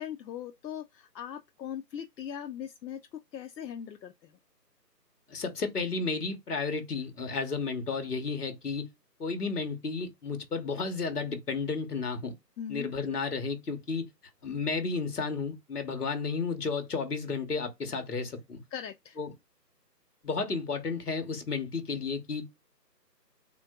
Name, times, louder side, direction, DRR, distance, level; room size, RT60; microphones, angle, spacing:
voice 1, 0.0-3.0 3.3-4.3 12.6-12.9 18.7-19.2, left 9 dB, 80° left, 0.6 m, -40 dB
voice 2, 5.3-8.8 9.2-12.3 12.7-14.0 14.4-18.6 19.2-19.3 20.2-22.4, left 4 dB, 65° left, 1.1 m, -32 dB
3.7 x 2.5 x 2.3 m
figure-of-eight pair, 175°, 50 cm